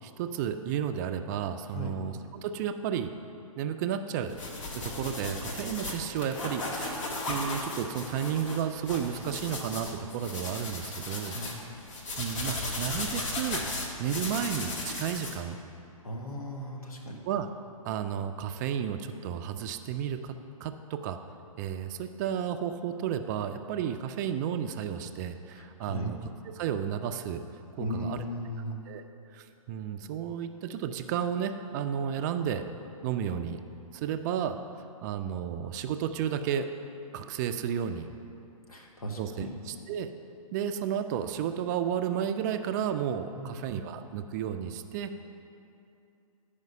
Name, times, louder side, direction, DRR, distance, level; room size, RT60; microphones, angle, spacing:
voice 1, 0.0-3.1 3.6-4.4 4.7-11.4 12.2-13.6 14.0-15.6 17.3-17.5 17.8-20.4 20.6-21.2 21.6-26.3 26.5-27.4 27.8-28.2 28.9-29.0 29.3-32.6 33.0-33.6 33.9-34.6 35.0-36.7 37.1-38.1 39.2-40.1 40.5-45.1, right 8 dB, 30° right, 8 dB, 0.4 m, -32 dB
sound 1, 4.3-15.4, left 2 dB, 60° left, 1.4 m, -36 dB
voice 2, 16.0-17.2 25.5-26.1 27.8-28.8 38.7-39.5 43.3-43.5, equal, 85° left, 1 dB, 1.4 m, -37 dB
9.3 x 5.0 x 5.4 m, 2.7 s
hypercardioid pair, 125°, 18 cm